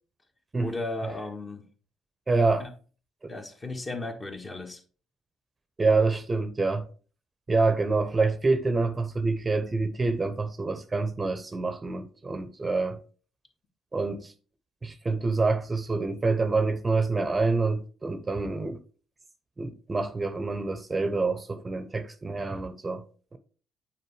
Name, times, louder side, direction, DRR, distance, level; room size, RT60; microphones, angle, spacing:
voice 1, 0.6-1.6 2.6-2.7 3.3-4.8, left 2 dB, 30° left, 1.6 m, -35 dB
voice 2, 2.3-2.7 3.2-3.3 5.8-6.8 7.5-13.0 13.9-14.3 14.8-18.8 19.6-23.0, right 3 dB, 25° right, 0.8 m, -26 dB
9.1 x 4.4 x 3.3 m
figure-of-eight pair, 45°, 0 cm